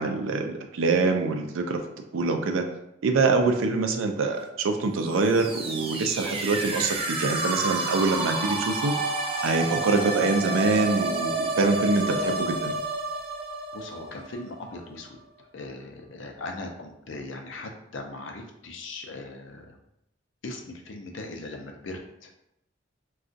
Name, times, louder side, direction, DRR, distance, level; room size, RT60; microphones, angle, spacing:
voice 1, 0.0-1.8 2.1-2.7 3.0-8.9 9.4-12.8, right 3 dB, 90° right, 5 dB, 0.4 m, -25 dB
sound 1, 5.1-14.8, right 2 dB, 30° right, 0.4 m, -30 dB
voice 2, 13.7-15.1 15.5-19.8 20.4-22.3, left 2 dB, 70° left, 3 dB, 0.5 m, -39 dB
2.5 x 2.3 x 3.8 m, 0.81 s
head